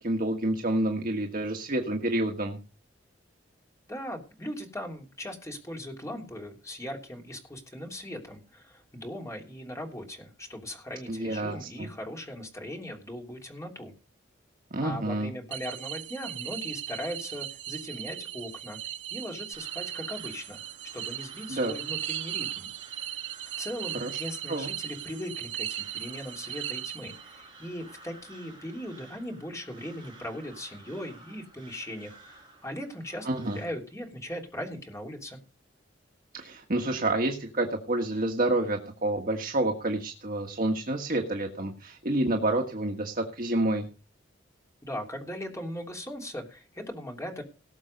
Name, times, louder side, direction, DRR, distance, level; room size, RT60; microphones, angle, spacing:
voice 1, 0.0-2.6 11.1-11.9 14.7-15.3 21.5-21.7 24.0-24.1 24.5-24.7 33.2-33.6 36.3-43.9, right 1 dB, 50° right, 2 dB, 1.6 m, -28 dB
voice 2, 3.9-13.9 14.8-20.6 20.9-22.7 23.6-35.4 44.8-47.4, equal, 15° left, 2 dB, 3.2 m, -39 dB
sound 1, 15.5-27.5, right 12 dB, 80° right, 0.9 m, -37 dB
Crow, 19.5-33.7, right 2 dB, 25° right, 6.1 m, -53 dB
18.5 x 7.1 x 5.3 m, 0.33 s
head